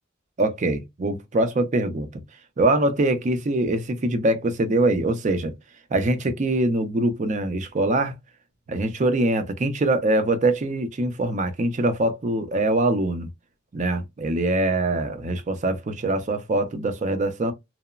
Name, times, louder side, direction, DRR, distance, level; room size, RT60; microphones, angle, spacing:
voice 1, 0.4-2.2 2.6-5.5 5.9-8.1 8.7-13.3 13.7-17.5, right 2 dB, 35° right, 0.4 m, -23 dB
2.9 x 2.0 x 2.3 m
head